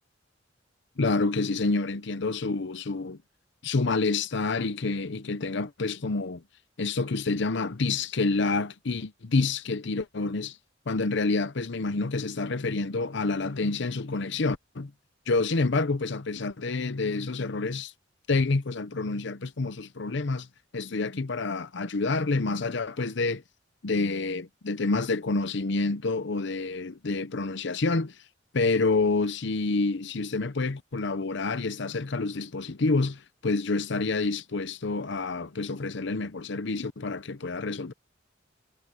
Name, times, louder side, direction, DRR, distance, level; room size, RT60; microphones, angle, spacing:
voice 1, 1.0-3.2 3.6-6.4 6.8-10.6 10.9-14.9 15.3-17.9 18.3-20.5 20.7-23.4 23.8-28.2 28.5-37.9, left 3 dB, 65° left, 0.8 m, -28 dB
head